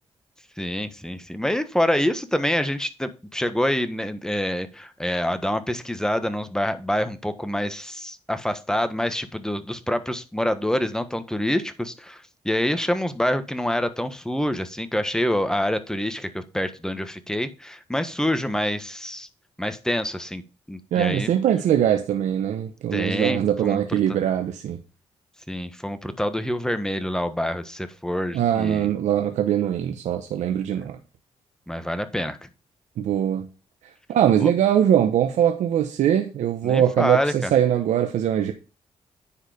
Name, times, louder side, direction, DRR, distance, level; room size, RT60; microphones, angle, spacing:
voice 1, 0.6-19.3 19.6-20.4 20.7-21.3 22.9-23.8 25.5-28.9 31.7-32.5 34.4-34.5 36.6-37.5, left 1 dB, 5° left, 1.4 m, -26 dB
voice 2, 20.9-24.8 28.3-31.0 33.0-33.5 34.1-38.5, right 10 dB, 90° right, 0.9 m, -22 dB
9.9 x 4.8 x 5.1 m
cardioid pair, 70°, 12 cm